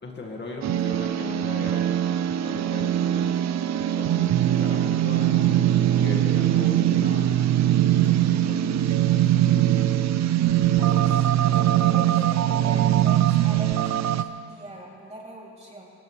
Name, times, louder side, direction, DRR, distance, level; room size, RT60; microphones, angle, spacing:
voice 1, 0.0-2.0 2.4-3.3 4.0-5.6 5.9-7.5 7.9-9.7, left 3 dB, 35° left, 0 dB, 2.1 m, -38 dB
sound 1, 0.6-14.2, right 12 dB, 65° right, 0.6 m, -21 dB
voice 2, 10.8-15.8, right 1 dB, 20° right, -3 dB, 3.4 m, -41 dB
19.5 x 17.5 x 3.4 m, 2.4 s
cardioid pair, 90°, 30 cm